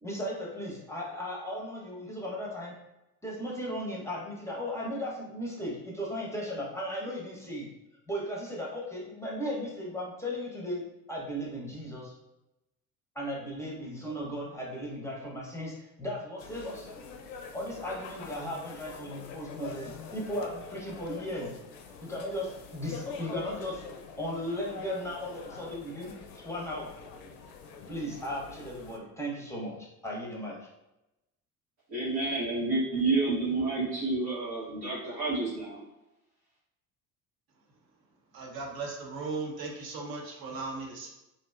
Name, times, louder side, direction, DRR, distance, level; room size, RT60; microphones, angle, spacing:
voice 1, 0.0-2.8 3.2-7.7 8.1-12.1 13.2-16.9 17.5-21.5 22.0-23.8 24.2-27.0 27.9-30.6, equal, 5° left, -4 dB, 0.7 m, -36 dB
sound 1, 16.4-29.0, left 5 dB, 65° left, 0.5 m, -45 dB
voice 2, 31.9-35.8, right 3 dB, 85° right, -11 dB, 1.0 m, -29 dB
voice 3, 38.3-41.1, right 3 dB, 55° right, 0 dB, 0.7 m, -37 dB
2.5 x 2.2 x 2.2 m, 0.93 s
hypercardioid pair, 60°, 44 cm